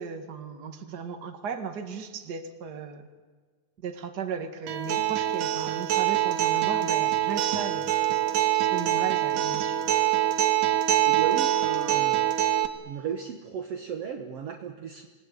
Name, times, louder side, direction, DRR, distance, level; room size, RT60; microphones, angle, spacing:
voice 1, 0.0-3.1 3.8-7.9 8.5-9.8, right 6 dB, 35° right, 6 dB, 2.1 m, -36 dB
Acoustic guitar, 4.7-12.7, right 12 dB, 80° right, 3.0 m, -24 dB
voice 2, 11.1-12.3 12.8-15.1, right 7 dB, 55° right, 4 dB, 2.0 m, -35 dB
27.0 x 19.0 x 9.7 m, 1.4 s
omnidirectional pair, 3.7 m